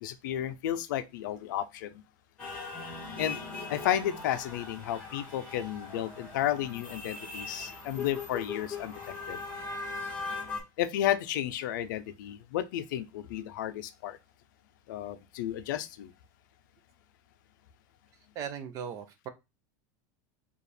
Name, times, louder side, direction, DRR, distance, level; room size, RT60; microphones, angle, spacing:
voice 1, 0.0-1.9 3.2-3.4 3.7-9.4 10.8-14.2 14.9-16.1, left 11 dB, 75° left, 0.5 m, -32 dB
sound 1, 2.4-10.6, left 4 dB, 10° left, 1.8 m, -40 dB
voice 2, 18.4-19.3, right 8 dB, 30° right, 0.6 m, -38 dB
4.7 x 2.4 x 3.2 m
supercardioid pair, 165°, 10 cm